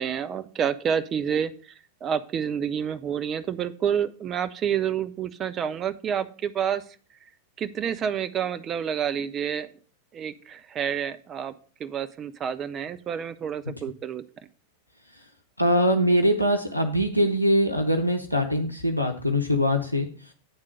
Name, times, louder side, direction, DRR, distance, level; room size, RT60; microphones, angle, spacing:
voice 1, 0.0-1.5 2.0-6.8 7.6-9.7 10.1-11.5 11.8-14.2, right 8 dB, 25° right, 12 dB, 0.5 m, -28 dB
voice 2, 15.6-20.1, equal, 90° left, 3 dB, 0.7 m, -22 dB
8.8 x 3.7 x 6.5 m, 0.42 s
figure-of-eight pair, 90°, 0 cm